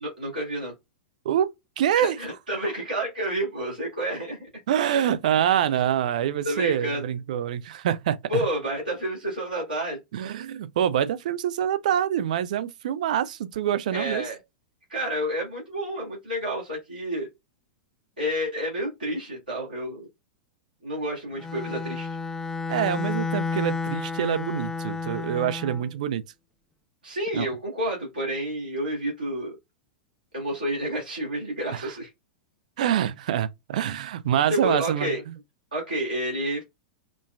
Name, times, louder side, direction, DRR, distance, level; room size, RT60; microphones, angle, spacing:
voice 1, 0.0-0.7 1.9-4.5 6.4-7.0 8.3-10.0 13.9-14.4 14.9-17.3 18.2-20.1 20.8-22.1 27.0-29.6 30.3-32.1 34.5-35.2 35.7-36.6, right 1 dB, 85° right, 2.0 m, -29 dB
voice 2, 1.3-2.2 4.7-8.5 10.1-14.2 22.7-26.2 27.3-27.5 31.7-31.9 32.8-35.3, right 10 dB, 55° right, 0.4 m, -26 dB
Bowed string instrument, 21.3-25.9, left 4 dB, 10° left, 0.3 m, -31 dB
5.1 x 2.2 x 2.2 m
figure-of-eight pair, 95°, 5 cm